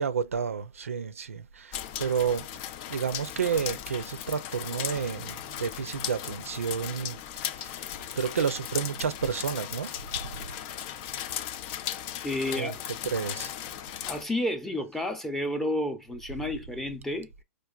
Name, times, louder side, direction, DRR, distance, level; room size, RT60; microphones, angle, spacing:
voice 1, 0.0-2.5 2.9-7.8 8.2-10.5 12.5-12.7 13.0-13.5, right 6 dB, 80° right, 0.5 m, -31 dB
sound 1, 1.7-14.2, left 11 dB, 40° left, 0.4 m, -37 dB
sound 2, 5.0-5.9 7.9-8.6 10.4-11.2, left 4 dB, 70° left, 0.8 m, -52 dB
voice 2, 12.2-12.9 14.0-17.3, left 1 dB, 5° left, 0.7 m, -31 dB
4.6 x 2.4 x 2.4 m
hypercardioid pair, 115°, 7 cm